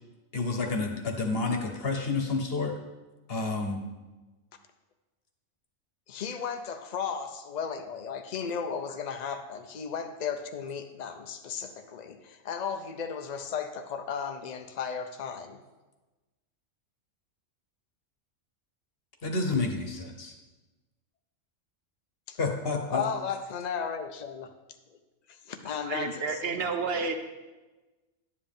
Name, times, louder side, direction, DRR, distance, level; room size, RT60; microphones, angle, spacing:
voice 1, 0.3-2.8 3.3-3.8 19.2-20.3 22.4-23.0, left 3 dB, 50° left, 3 dB, 1.1 m, -29 dB
voice 2, 6.1-15.6 22.3-22.4 22.9-24.5 25.3-26.5, left 6 dB, 70° left, 6 dB, 0.4 m, -35 dB
voice 3, 25.8-27.1, right 4 dB, 55° right, 6 dB, 0.8 m, -30 dB
10.5 x 7.6 x 3.5 m, 1.2 s
omnidirectional pair, 1.4 m